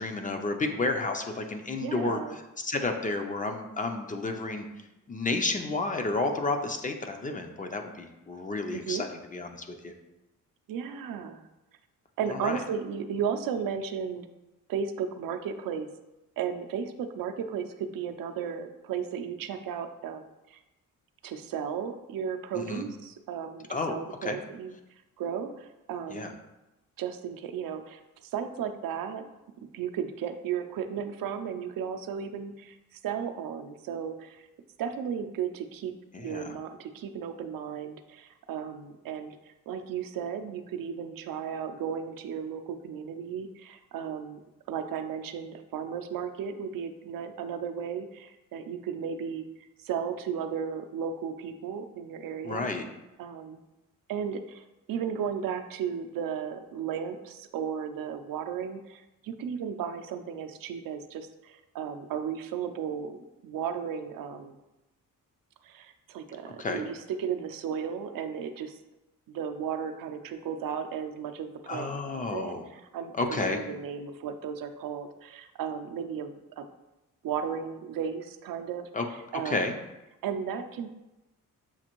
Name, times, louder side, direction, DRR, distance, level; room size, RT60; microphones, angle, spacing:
voice 1, 0.0-2.2 2.6-9.9 12.3-12.6 22.7-22.9 23.7-24.4 26.1-26.3 36.1-36.6 52.4-52.9 66.6-66.8 71.7-72.7 73.1-73.6 78.9-79.0 79.4-79.7, left 3 dB, 25° left, 5 dB, 0.4 m, -31 dB
voice 2, 1.8-2.4 8.7-9.0 10.7-11.5 12.2-14.3 14.7-15.9 16.4-20.6 21.2-24.7 25.2-26.4 27.0-29.2 29.7-34.5 34.8-44.4 44.7-49.4 49.8-52.7 53.2-53.6 54.1-64.5 65.6-68.8 69.3-76.6 77.2-78.9 79.3-79.6 80.2-80.9, right 7 dB, 80° right, 7 dB, 0.5 m, -35 dB
7.1 x 2.5 x 2.9 m, 0.99 s
cardioid pair, 120°, 33 cm